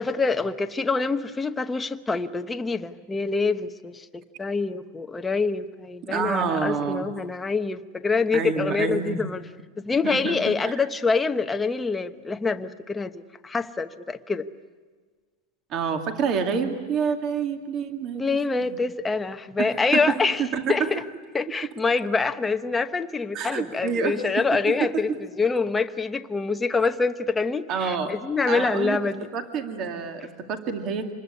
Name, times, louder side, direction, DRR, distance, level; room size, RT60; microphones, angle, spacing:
voice 1, 0.0-9.4 9.8-14.5 18.1-20.4 20.7-21.0 21.3-25.1 25.4-29.3, left 4 dB, 10° left, 0.9 m, -26 dB
voice 2, 6.1-7.1 8.3-9.2 10.0-10.9 15.7-18.2 18.6-18.8 19.6-20.9 23.3-25.2 27.7-28.1 28.5-29.0 29.3-31.1, right 6 dB, 30° right, 2.2 m, -28 dB
27.0 x 21.0 x 9.9 m
supercardioid pair, 165°, 0 cm